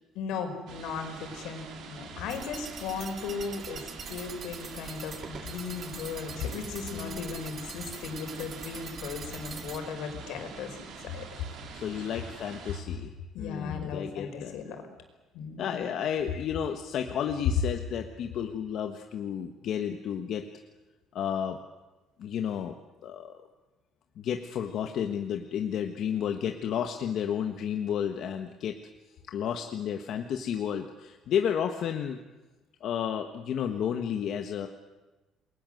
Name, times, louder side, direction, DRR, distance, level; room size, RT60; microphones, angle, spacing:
voice 1, 0.2-11.2 12.0-12.1 13.3-14.8 15.3-15.9, left 5 dB, 75° left, 5 dB, 5.6 m, -37 dB
sound 1, 0.7-12.8, right 6 dB, 60° right, 4.9 m, -45 dB
sound 2, 2.3-9.8, right 5 dB, 30° right, 2.3 m, -44 dB
voice 2, 6.9-7.3 11.7-14.5 15.6-20.4 21.1-21.6 22.2-22.7 23.0-23.4 24.2-28.8 29.3-32.2 32.8-34.7, left 8 dB, 50° left, 5 dB, 1.5 m, -32 dB
29.0 x 22.0 x 7.9 m, 1.2 s
cardioid pair, 170°, 0 cm